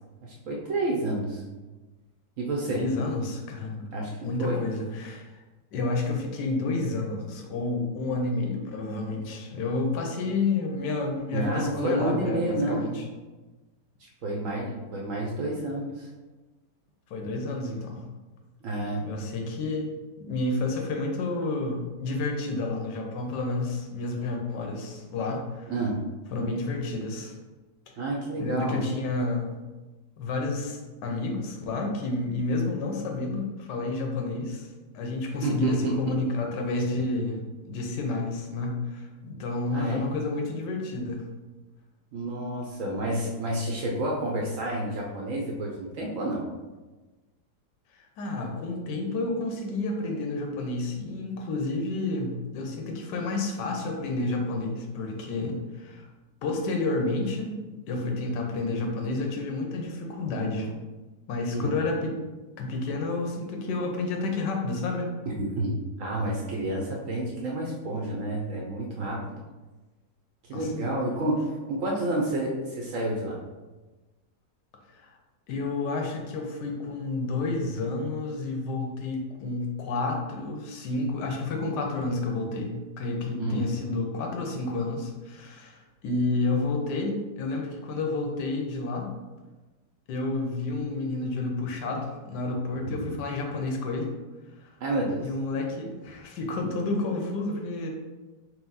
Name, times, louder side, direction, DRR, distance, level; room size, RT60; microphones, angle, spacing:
voice 1, 0.2-1.4 2.4-2.8 3.9-4.1 4.4-4.6 11.3-12.8 14.2-16.1 18.6-19.1 25.7-26.0 28.0-28.8 35.4-35.9 39.7-40.0 42.1-46.4 61.5-61.7 65.4-69.4 70.4-71.4 71.7-73.4 83.4-83.6 92.9-93.1 94.8-95.2, right 1 dB, 65° right, -2 dB, 0.8 m, -29 dB
voice 2, 2.7-3.9 4.2-5.4 5.7-13.0 17.1-18.0 19.0-19.9 20.2-25.7 26.3-27.3 28.4-29.6 30.2-34.7 34.9-41.2 47.9-56.0 56.4-57.6 57.9-60.7 61.3-62.2 62.6-65.1 70.5-70.7 74.9-75.1 75.5-89.1 90.1-94.1 94.6-94.7 95.2-97.9, left 3 dB, 85° left, 1 dB, 1.3 m, -30 dB
4.4 x 2.1 x 4.0 m, 1.2 s
omnidirectional pair, 1.8 m